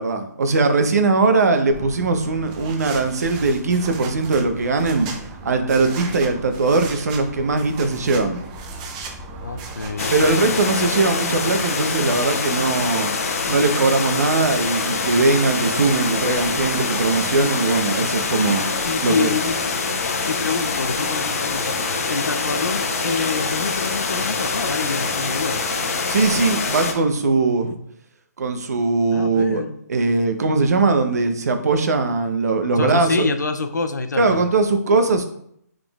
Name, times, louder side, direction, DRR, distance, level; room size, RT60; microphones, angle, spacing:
voice 1, 0.0-5.1 5.4-8.4 10.1-13.1 13.5-18.7 19.0-19.3 26.1-27.8 28.4-29.6 29.9-33.3 34.2-35.2, right 3 dB, 65° right, 7 dB, 0.7 m, -20 dB
sound 1, 1.7-10.3, right 3 dB, 25° right, 0.6 m, -36 dB
voice 2, 9.4-10.5 18.8-19.6 20.3-25.6 29.1-29.8 32.8-34.4, left 4 dB, 85° left, 8 dB, 0.5 m, -27 dB
sound 2, 10.0-26.9, left 4 dB, 55° left, 0.8 m, -24 dB
5.0 x 3.7 x 2.3 m, 0.69 s
hypercardioid pair, 150°, 9 cm